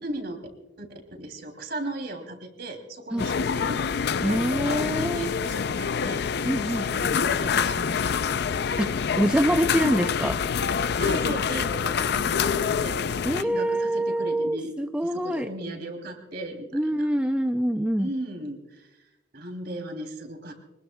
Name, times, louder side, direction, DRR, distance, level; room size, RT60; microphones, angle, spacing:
voice 1, 0.0-0.4 0.8-0.9 1.2-6.2 6.6-8.2 11.0-14.8 15.0-16.7 16.9-17.1 18.0-19.0 19.3-20.5, right 1 dB, 50° right, 4 dB, 2.9 m, -37 dB
sound 1, 3.2-13.4, left 6 dB, 55° left, 0.4 m, -26 dB
voice 2, 4.2-5.2 6.4-6.9 8.8-8.9 9.2-10.4 13.2-15.5 16.7-18.1, right 1 dB, 5° right, 6 dB, 0.4 m, -25 dB
25.0 x 20.5 x 2.3 m, 1.0 s
head